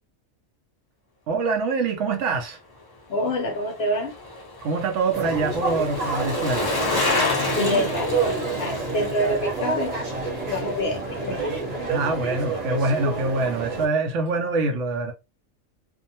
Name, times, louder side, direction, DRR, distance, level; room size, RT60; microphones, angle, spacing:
voice 1, 1.3-2.6 4.6-6.8 11.9-15.1, right 3 dB, 70° right, 0.9 m, -25 dB
voice 2, 3.1-4.1 7.6-10.0 10.5-12.0, left 1 dB, 60° left, 0.8 m, -27 dB
Bicycle, 3.1-11.6 11.9-12.0, left 3 dB, 35° left, 0.3 m, -30 dB
sound 1, 5.1-13.9, right 3 dB, 35° right, 0.9 m, -28 dB
2.6 x 2.1 x 2.7 m
omnidirectional pair, 1.4 m